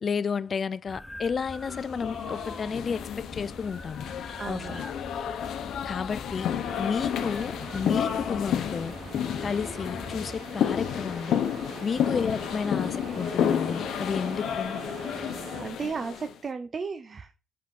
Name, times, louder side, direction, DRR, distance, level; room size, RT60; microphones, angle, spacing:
voice 1, 0.0-4.1 4.5-4.9 5.9-6.5 6.8-9.0 9.4-11.4 11.8-14.8, left 6 dB, 45° left, 0.4 m, -31 dB
sound 1, 0.9-10.4, left 1 dB, 5° left, 0.6 m, -44 dB
sound 2, 1.6-16.3, left 9 dB, 75° left, 0.9 m, -31 dB
voice 2, 4.4-4.8 12.0-12.2 15.6-17.4, right 5 dB, 45° right, 0.7 m, -35 dB
sound 3, 6.7-15.6, right 4 dB, 75° right, 2.8 m, -43 dB
7.5 x 5.7 x 5.4 m
cardioid pair, 80°, 0 cm